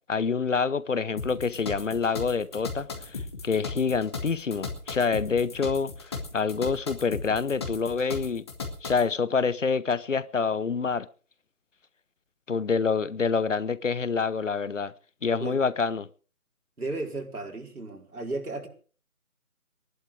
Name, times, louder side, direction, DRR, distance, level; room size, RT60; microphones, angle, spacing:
voice 1, 0.1-8.4 8.8-11.1 12.5-14.9 15.2-16.1, left 5 dB, 55° left, 0.9 m, -27 dB
sound 1, 1.2-9.1, left 4 dB, 20° left, 1.6 m, -36 dB
voice 2, 16.8-18.7, right 2 dB, 85° right, 4.7 m, -34 dB
19.5 x 11.5 x 5.0 m
figure-of-eight pair, 165°, 44 cm